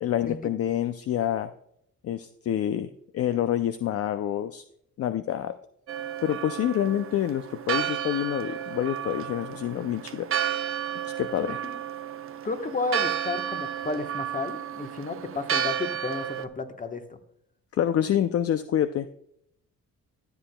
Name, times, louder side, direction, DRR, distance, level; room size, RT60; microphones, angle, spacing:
voice 1, 0.0-1.5 2.0-4.6 5.0-5.6 6.2-10.3 11.0-11.6 17.7-19.2, left 11 dB, 50° left, 11 dB, 0.5 m, -27 dB
Church bell, 5.9-16.5, right 9 dB, 45° right, 0.6 m, -32 dB
voice 2, 11.4-11.8 12.4-17.2, left 3 dB, 25° left, 7 dB, 1.1 m, -32 dB
14.0 x 8.0 x 2.2 m, 0.73 s
cardioid pair, 90°, 30 cm